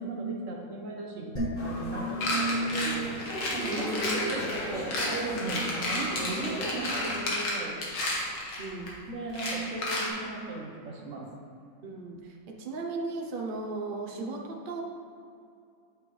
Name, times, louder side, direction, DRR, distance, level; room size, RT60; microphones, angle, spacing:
voice 1, 0.0-3.1 3.5-7.8 9.1-11.3, right 3 dB, 50° right, -1 dB, 1.3 m, -37 dB
sound 1, 1.4-4.7, right 1 dB, 20° left, 1.2 m, -35 dB
sound 2, 1.6-7.1, left 1 dB, 45° left, 0.7 m, -38 dB
sound 3, 2.2-8.9 9.3-10.1, left 2 dB, 65° left, 2.0 m, -32 dB
voice 2, 3.6-4.6 8.6-9.0 11.8-14.8, right 2 dB, 80° right, 0 dB, 0.4 m, -36 dB
8.4 x 7.7 x 3.3 m, 2.5 s
omnidirectional pair, 2.1 m